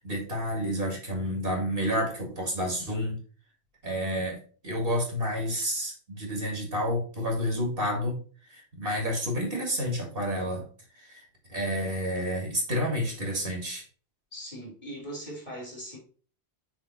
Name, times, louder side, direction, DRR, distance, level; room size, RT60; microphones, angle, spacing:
voice 1, 0.0-3.2 3.8-4.4 4.6-8.2 8.5-10.7 11.0-11.2 11.5-13.8, equal, 55° right, 2.2 m, -30 dB
voice 2, 14.3-16.0, right 1 dB, 45° left, 3.1 m, -40 dB
6.2 x 3.8 x 4.1 m
omnidirectional pair, 1.1 m